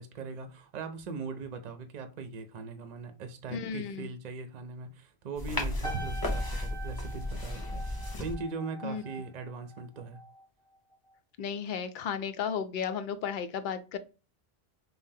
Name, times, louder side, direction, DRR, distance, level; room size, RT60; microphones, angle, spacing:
voice 1, 0.0-10.2, right 4 dB, 50° right, 0.6 m, -40 dB
voice 2, 3.5-4.1 8.8-9.0 11.4-14.0, left 7 dB, 60° left, 0.6 m, -34 dB
sound 1, 5.4-8.4, left 1 dB, 25° left, 0.7 m, -34 dB
sound 2, 5.8-10.4 10.7-11.1, right 1 dB, 5° left, 1.0 m, -44 dB
5.4 x 2.0 x 2.7 m
omnidirectional pair, 1.0 m